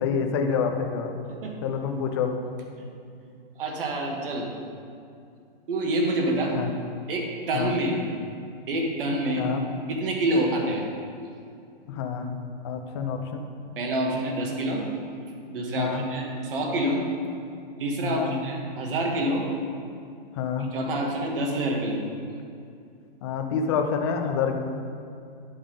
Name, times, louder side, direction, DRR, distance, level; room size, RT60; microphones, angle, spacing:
voice 1, 0.0-1.1 1.6-2.3 6.5-6.7 7.5-7.8 9.4-9.6 11.9-13.4 15.8-16.0 18.0-18.3 20.4-20.7 23.2-24.5, left 6 dB, 30° left, 4 dB, 0.5 m, -27 dB
voice 2, 3.6-4.5 5.7-6.6 7.1-8.0 8.7-9.5 9.9-10.8 13.8-14.8 15.5-17.0 17.8-19.4 20.7-22.0, right 1 dB, 65° right, 0 dB, 1.5 m, -27 dB
10.5 x 3.5 x 5.1 m, 2.5 s
hypercardioid pair, 160°, 30 cm